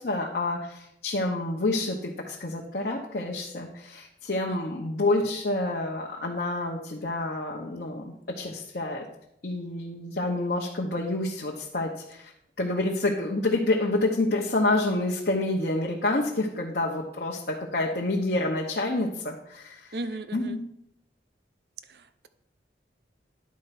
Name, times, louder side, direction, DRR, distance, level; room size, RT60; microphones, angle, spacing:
voice 1, 0.0-9.1 9.4-12.3 12.6-20.0 20.3-20.6, left 2 dB, 55° left, -1 dB, 0.9 m, -28 dB
voice 2, 19.9-20.6 21.9-22.3, right 2 dB, 60° right, 11 dB, 0.6 m, -37 dB
10.5 x 4.4 x 5.8 m, 0.78 s
head